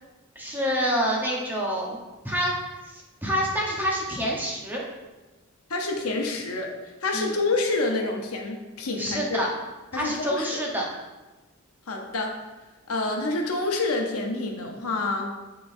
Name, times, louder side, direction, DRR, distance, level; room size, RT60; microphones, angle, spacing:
voice 1, 0.3-2.0 2.2-2.5 3.2-4.8 7.1-7.3 9.0-9.5 9.9-10.8, equal, 10° right, -3 dB, 1.0 m, -27 dB
voice 2, 5.7-6.7 7.0-9.4 9.9-10.6 11.9-12.3 12.9-15.3, left 2 dB, 80° left, 1 dB, 0.9 m, -27 dB
10.0 x 3.8 x 2.7 m, 1.1 s
head